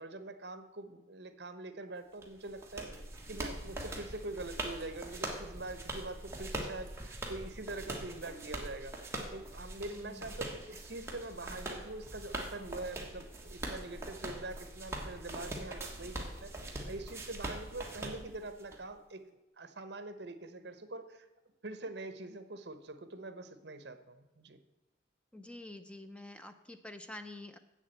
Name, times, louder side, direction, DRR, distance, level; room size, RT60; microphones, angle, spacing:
voice 1, 0.0-2.9 3.3-19.2 19.6-21.3 21.6-24.6, right 2 dB, 65° right, 10 dB, 0.9 m, -44 dB
sound 1, 2.2-18.8, right 1 dB, 15° right, 1.4 m, -42 dB
voice 2, 9.9-10.2 25.3-27.6, left 2 dB, 5° left, 8 dB, 0.4 m, -47 dB
7.8 x 7.3 x 7.9 m, 1.0 s
head